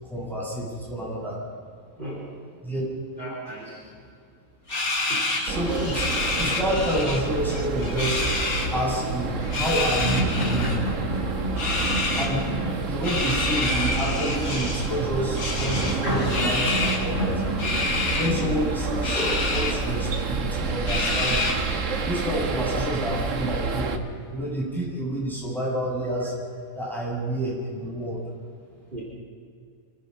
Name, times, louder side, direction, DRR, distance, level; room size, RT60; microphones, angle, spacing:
voice 1, 0.0-1.4 2.6-2.8 5.4-8.2 8.7-10.8 12.2-12.4 12.8-17.4 18.1-19.2 19.5-21.6 22.0-24.0 24.3-26.3 26.7-28.2, equal, ahead, -6 dB, 7.6 m, -29 dB
voice 2, 3.2-3.8 5.1-5.3 18.2-18.5 19.1-19.4 28.9-29.0, right 1 dB, 35° right, -5 dB, 4.5 m, -34 dB
sound 1, 4.7-7.2 7.5-8.7 9.4-10.8 11.6-12.3 13.0-14.9 15.4-17.0 17.6-18.3 19.0-19.7 20.2-20.3 20.9-21.7, left 3 dB, 85° left, 3.8 m, -28 dB
sound 2, 5.5-24.0, right 4 dB, 65° right, 1.7 m, -29 dB
sound 3, 8.0-23.1 23.6-24.2, equal, 40° left, 3.1 m, -33 dB
26.5 x 18.5 x 5.6 m, 2.3 s
omnidirectional pair, 1.5 m